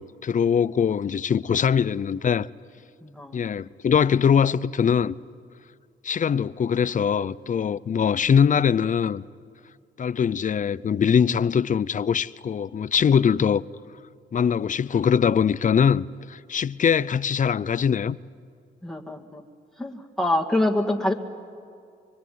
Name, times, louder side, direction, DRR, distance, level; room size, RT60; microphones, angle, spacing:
voice 1, 0.0-2.5 3.3-5.2 6.0-9.2 10.0-13.6 14.3-18.2, left 7 dB, 40° left, 0.6 m, -22 dB
voice 2, 3.0-3.5 18.8-19.4 19.8-21.1, left 1 dB, ahead, 2.1 m, -25 dB
24.5 x 23.5 x 9.5 m
cardioid pair, 90°, 19 cm